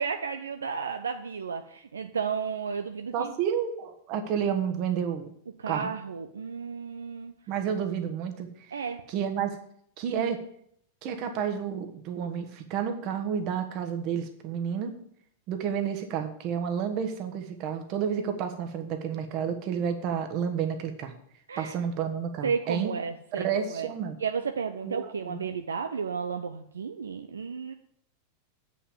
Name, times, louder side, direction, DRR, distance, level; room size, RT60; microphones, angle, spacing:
voice 1, 0.0-3.3 5.6-7.3 7.8-7.9 8.7-9.1 21.5-21.8 22.4-23.9 24.2-27.7, right 6 dB, 70° right, 7 dB, 0.5 m, -33 dB
voice 2, 3.1-5.3 5.7-5.9 7.5-8.8 9.1-9.6 10.0-10.4 11.0-14.9 15.5-21.2 21.6-22.9 23.3-24.1 24.8-25.5, right 7 dB, 40° right, 6 dB, 1.3 m, -30 dB
8.4 x 5.4 x 7.4 m, 0.69 s
figure-of-eight pair, 90°, 0 cm